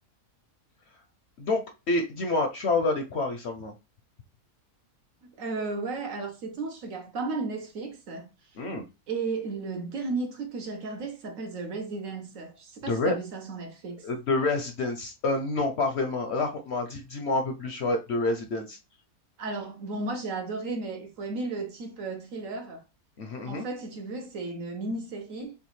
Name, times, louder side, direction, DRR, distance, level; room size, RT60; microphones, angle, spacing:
voice 1, 1.4-3.7 8.6-8.8 12.9-13.1 14.0-18.8 23.2-23.6, left 2 dB, 55° left, 0.8 m, -28 dB
voice 2, 5.2-8.3 9.1-14.1 19.4-22.8 23.4-25.5, right 3 dB, 65° right, 1.3 m, -34 dB
6.8 x 2.4 x 3.1 m
omnidirectional pair, 1.6 m